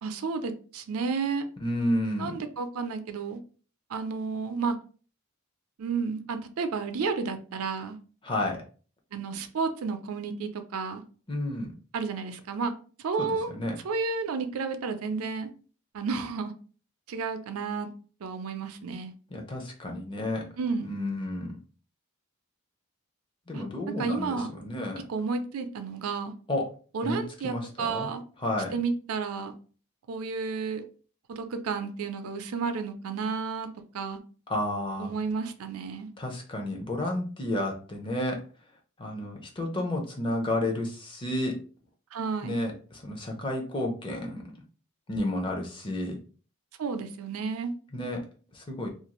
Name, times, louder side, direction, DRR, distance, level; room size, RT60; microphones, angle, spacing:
voice 1, 0.0-1.5 2.2-3.4 3.9-4.8 5.8-8.0 9.1-11.0 11.9-12.7 13.0-13.5 13.8-15.5 15.9-16.5 17.1-17.9 18.2-19.1 20.6-21.0 23.5-23.6 24.0-24.5 25.1-26.3 26.9-28.2 28.7-29.5 30.1-30.8 31.3-33.7 33.9-34.2 35.0-36.1 42.1-42.6 46.8-47.7, right 4 dB, 80° right, 8 dB, 0.4 m, -31 dB
voice 2, 1.6-2.4 8.2-8.6 11.3-11.7 13.2-13.8 19.3-20.4 20.8-21.5 23.5-25.0 26.5-26.7 27.0-28.1 28.4-28.7 34.5-35.1 36.2-38.4 39.0-41.6 42.4-44.4 45.1-46.2 47.9-48.2 48.5-48.9, left 1 dB, 20° left, 2 dB, 0.5 m, -31 dB
2.5 x 2.3 x 2.9 m, 0.39 s
head